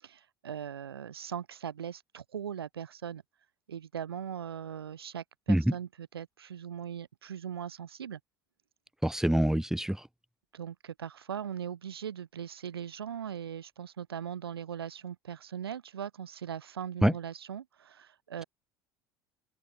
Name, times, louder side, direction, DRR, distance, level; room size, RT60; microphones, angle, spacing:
voice 1, 0.0-3.2 3.7-8.2 10.5-18.4, right 8 dB, 75° right, 7.0 m, -40 dB
voice 2, 9.0-10.0 17.0-17.1, right 1 dB, 5° right, 4.0 m, -25 dB
open air
figure-of-eight pair, 65°, 13 cm